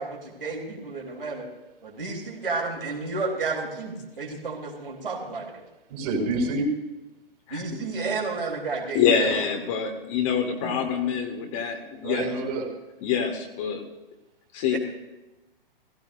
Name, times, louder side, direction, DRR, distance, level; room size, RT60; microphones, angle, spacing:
voice 1, 0.0-1.5 1.8-5.6 7.5-9.2 10.6-10.7 14.7-14.8, right 3 dB, 65° right, 0 dB, 3.7 m, -31 dB
voice 2, 5.9-6.7 9.1-9.4 12.0-12.7, right 2 dB, 40° right, 0 dB, 4.8 m, -28 dB
voice 3, 8.9-12.3 13.0-13.8 14.5-14.8, left 7 dB, 35° left, 4 dB, 1.9 m, -25 dB
18.5 x 16.0 x 2.6 m, 1.1 s
figure-of-eight pair, 120°, 29 cm